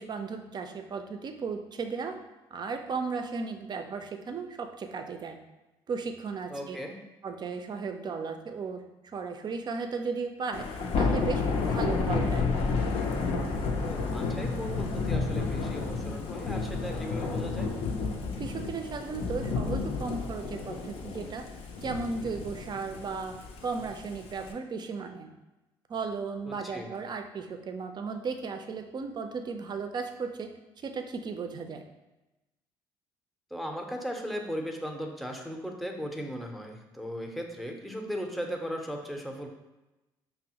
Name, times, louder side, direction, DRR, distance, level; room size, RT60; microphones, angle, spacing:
voice 1, 0.0-2.2 2.5-5.4 5.9-6.8 7.2-8.8 9.1-10.7 10.9-12.4 18.4-21.4 21.8-23.4 23.6-25.3 25.9-30.5 30.8-31.8, right 4 dB, 40° right, 6 dB, 0.5 m, -35 dB
voice 2, 6.5-7.0 13.9-17.7 26.5-26.9 33.5-39.5, equal, ahead, 2 dB, 0.6 m, -37 dB
Thunder / Rain, 10.5-24.5, left 4 dB, 60° left, 0.5 m, -31 dB
5.2 x 2.0 x 2.8 m, 1.0 s
hypercardioid pair, 65°, 11 cm